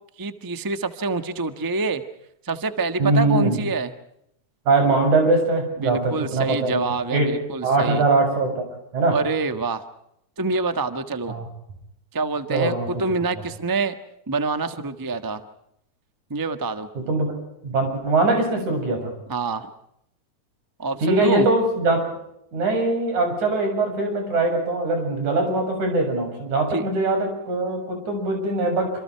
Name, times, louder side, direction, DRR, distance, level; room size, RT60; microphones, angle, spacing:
voice 1, 0.2-2.0 2.4-3.9 5.8-8.0 9.1-9.8 10.4-11.3 12.1-13.9 14.3-15.4 16.3-16.9 19.3-19.7 20.8-21.5 26.7-26.9, right 3 dB, 25° right, 9 dB, 0.4 m, -26 dB
voice 2, 3.0-3.6 4.7-6.8 7.1-7.3 7.6-8.6 8.9-9.2 11.3-11.5 12.5-12.9 17.0-17.3 17.6-19.1 21.0-22.0 22.5-28.9, right 2 dB, 80° right, 4 dB, 8.8 m, -22 dB
27.5 x 27.5 x 4.7 m, 0.77 s
omnidirectional pair, 3.4 m